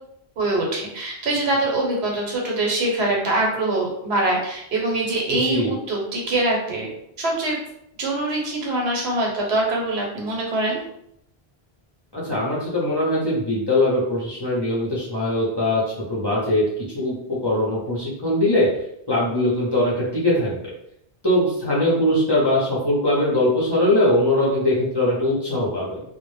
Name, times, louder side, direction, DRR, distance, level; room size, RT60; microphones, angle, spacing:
voice 1, 0.4-6.9 7.2-7.6 8.0-10.8, right 2 dB, 85° right, -2 dB, 1.0 m, -23 dB
voice 2, 5.3-5.8 12.1-16.6 16.9-18.7 19.1-20.6 21.2-26.0, left 1 dB, 30° left, -7 dB, 0.5 m, -21 dB
2.1 x 2.0 x 3.0 m, 0.74 s
omnidirectional pair, 1.1 m